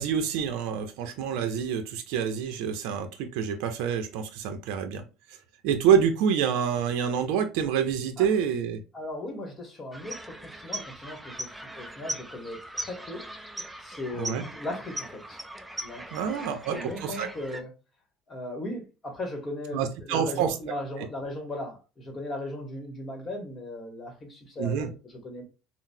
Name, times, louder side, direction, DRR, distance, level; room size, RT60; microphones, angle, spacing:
voice 1, 0.0-5.0 5.6-8.8 14.2-14.4 16.1-17.3 19.7-20.5 21.0-21.1 24.6-24.9, right 7 dB, 75° right, 0.5 m, -27 dB
voice 2, 8.9-13.5 13.8-15.4 15.8-17.7 18.3-25.4, left 1 dB, 25° left, 1.2 m, -37 dB
sound 1, 9.9-17.6, right 1 dB, 5° right, 0.4 m, -39 dB
3.9 x 2.0 x 2.6 m
supercardioid pair, 120°, 0 cm